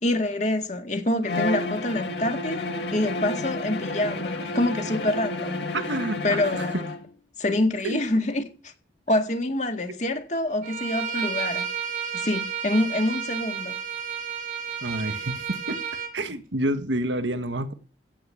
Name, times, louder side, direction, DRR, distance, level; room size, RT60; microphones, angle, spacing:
voice 1, 0.0-5.7 6.2-6.8 7.4-8.7 9.1-11.7 12.1-13.8, left 1 dB, 40° left, 1.9 m, -26 dB
Bowed string instrument, 1.2-7.1, left 2 dB, 70° left, 1.9 m, -31 dB
voice 2, 5.7-6.2 7.8-8.0 14.8-15.8 16.1-17.7, right 1 dB, 90° right, 1.5 m, -28 dB
Bowed string instrument 2, 10.6-16.1, right 7 dB, 50° right, 3.0 m, -31 dB
15.5 x 5.6 x 8.6 m
head